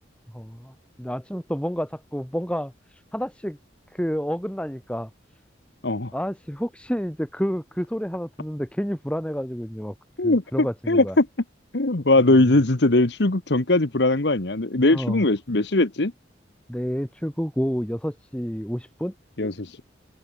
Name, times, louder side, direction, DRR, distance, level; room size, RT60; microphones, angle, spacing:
voice 1, 0.3-3.6 3.9-5.1 6.1-9.9 10.2-11.2 12.3-12.5 14.8-15.2 16.7-19.1, equal, 5° left, 3.4 m, -29 dB
voice 2, 10.2-11.3 11.7-16.1 19.4-19.8, left 2 dB, 65° left, 1.3 m, -20 dB
head